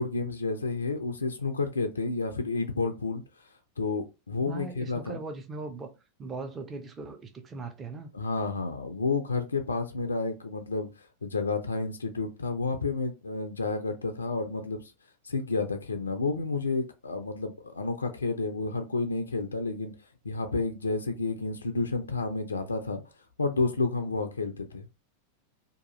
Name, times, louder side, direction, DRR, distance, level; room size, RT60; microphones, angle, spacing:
voice 1, 0.0-3.5 3.8-5.2 8.1-14.9 15.2-19.9 20.2-23.0 23.4-24.9, left 3 dB, 75° left, 0.3 m, -30 dB
voice 2, 4.4-5.9 6.2-8.1, right 3 dB, 20° right, 0.5 m, -39 dB
2.8 x 2.3 x 2.8 m
figure-of-eight pair, 90°, 0 cm